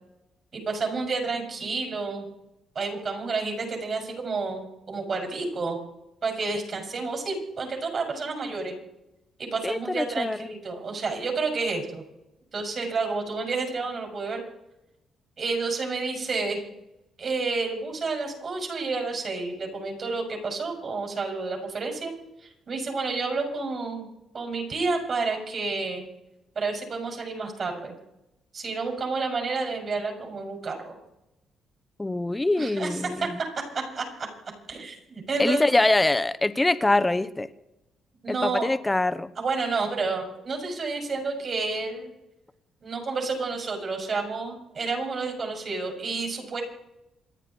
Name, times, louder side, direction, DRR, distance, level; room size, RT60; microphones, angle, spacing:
voice 1, 0.5-2.3 2.7-5.8 6.2-8.8 9.4-12.0 12.5-14.4 15.4-16.6 17.2-22.1 22.4-24.1 24.3-26.0 26.5-27.9 28.5-30.9 32.6-33.3 33.7-34.0 34.7-35.7 38.2-38.7 39.4-42.1 42.8-46.6, right 4 dB, 50° right, 2 dB, 6.0 m, -30 dB
voice 2, 9.6-10.5 32.0-33.4 35.4-37.5 38.3-39.3, left 2 dB, 15° left, 13 dB, 1.0 m, -24 dB
28.0 x 10.0 x 4.5 m, 0.89 s
cardioid pair, 90°, 0 cm